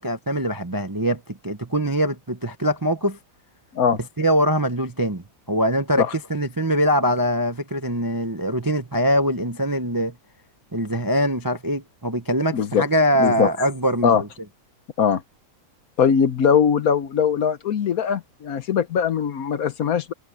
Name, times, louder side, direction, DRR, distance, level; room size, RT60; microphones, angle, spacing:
voice 1, 0.0-3.2 4.2-6.0 6.3-10.1 10.7-14.3, equal, 20° right, 0.6 m, -23 dB
voice 2, 12.5-12.8 13.2-13.5 14.0-14.2 15.0-15.2 16.0-20.1, left 7 dB, 60° left, 1.3 m, -20 dB
omnidirectional pair, 1.8 m